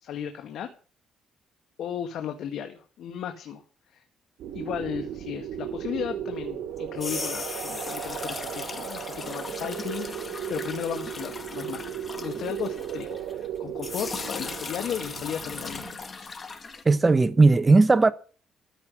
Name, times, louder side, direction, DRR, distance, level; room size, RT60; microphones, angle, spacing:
voice 1, 0.0-0.7 1.8-3.6 3.9-4.0 4.5-16.3, left 9 dB, 70° left, 1.9 m, -35 dB
sound 1, 4.4-15.9, right 10 dB, 80° right, 2.2 m, -36 dB
sound 2, 6.8-13.5 13.8-16.8, left 4 dB, 30° left, 2.3 m, -38 dB
voice 2, 16.8-18.1, right 3 dB, 25° right, 0.8 m, -17 dB
14.5 x 6.0 x 9.7 m
cardioid pair, 95°, 0 cm